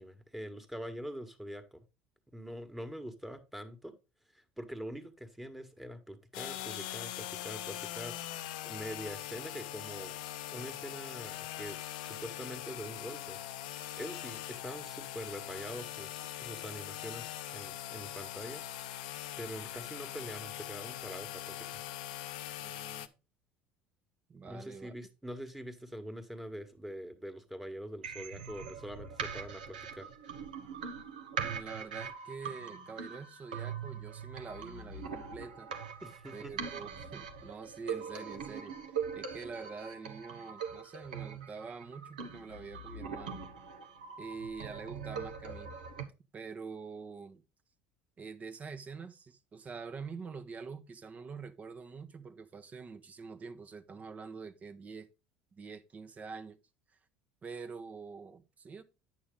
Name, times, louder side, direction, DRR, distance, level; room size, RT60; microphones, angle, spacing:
voice 1, 0.0-1.9 2.3-3.9 4.3-8.2 8.6-10.2 10.5-13.4 14.0-18.6 19.4-21.8 24.4-30.1 36.0-36.5, equal, 5° right, 1.6 m, -44 dB
sound 1, 6.3-23.1, left 13 dB, 75° left, 0.6 m, -42 dB
voice 2, 22.6-23.1 24.3-24.9 31.4-35.7 36.3-43.4 44.2-45.7 46.3-47.4 48.2-55.1 55.5-56.6 57.4-58.8, right 5 dB, 35° right, 1.0 m, -46 dB
sound 2, 28.0-46.0, right 6 dB, 85° right, 1.0 m, -42 dB
9.1 x 6.2 x 3.8 m
hypercardioid pair, 75°, 4 cm